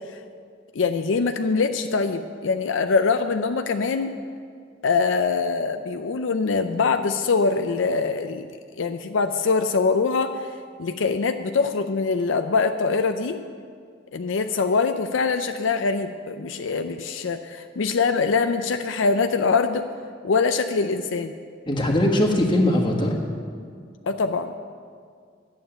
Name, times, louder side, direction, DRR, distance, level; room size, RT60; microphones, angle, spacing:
voice 1, 0.7-4.2 4.8-8.5 8.8-10.4 10.8-13.4 14.1-19.9 20.2-21.4 24.0-24.5, left 4 dB, 75° left, 8 dB, 0.5 m, -23 dB
voice 2, 21.7-23.2, left 1 dB, 25° left, 1 dB, 1.4 m, -20 dB
11.0 x 7.4 x 8.8 m, 2.1 s
head